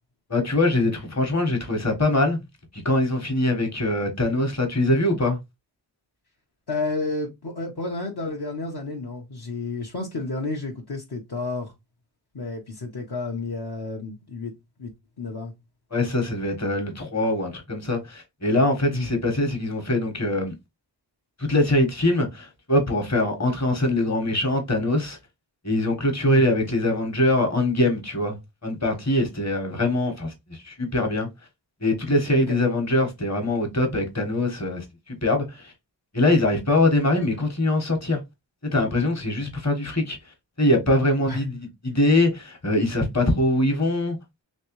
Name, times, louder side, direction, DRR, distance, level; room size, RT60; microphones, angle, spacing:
voice 1, 0.3-2.4 2.8-5.4 15.9-20.5 21.4-25.2 25.6-28.4 28.6-31.3 31.8-35.7 36.1-38.2 38.7-40.2 40.6-41.6 41.8-44.2, left 1 dB, 35° left, 1.3 m, -23 dB
voice 2, 6.7-11.7 12.3-14.5 14.8-14.9 15.2-15.5 18.9-19.1 26.2-26.4 32.5-32.6 41.3-41.4, left 3 dB, 60° left, 0.9 m, -30 dB
3.2 x 3.2 x 3.0 m
wide cardioid pair, 75°, 45 cm